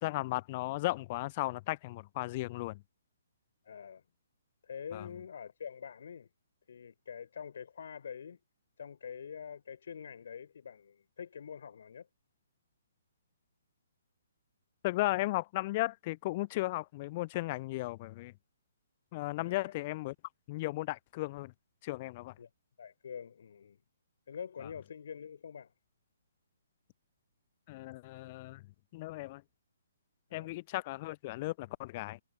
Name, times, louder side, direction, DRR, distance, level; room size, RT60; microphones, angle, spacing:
voice 1, 0.0-2.8 4.9-5.1 14.8-18.3 19.1-20.1 20.5-21.5 21.8-22.3 27.7-28.6 28.9-29.4 30.3-32.2, left 19 dB, 35° left, 0.3 m, -35 dB
voice 2, 3.6-4.0 4.6-6.3 6.7-8.4 8.8-12.1 19.4-19.7 22.4-22.5 22.8-23.8 24.3-25.7 30.3-30.5, left 7 dB, 60° left, 4.0 m, -45 dB
figure-of-eight pair, 130°, 0 cm